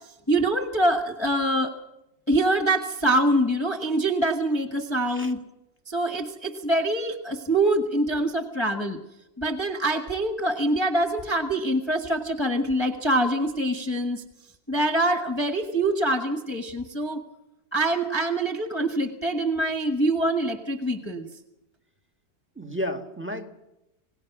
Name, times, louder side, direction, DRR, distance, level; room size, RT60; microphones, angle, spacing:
voice 1, 0.3-1.8 2.3-5.4 5.9-9.0 9.4-14.2 14.7-17.2 17.7-21.3, right 1 dB, 15° left, 4 dB, 1.6 m, -24 dB
voice 2, 22.5-23.6, equal, 5° right, 6 dB, 1.7 m, -32 dB
27.5 x 19.0 x 6.1 m, 0.93 s
omnidirectional pair, 2.0 m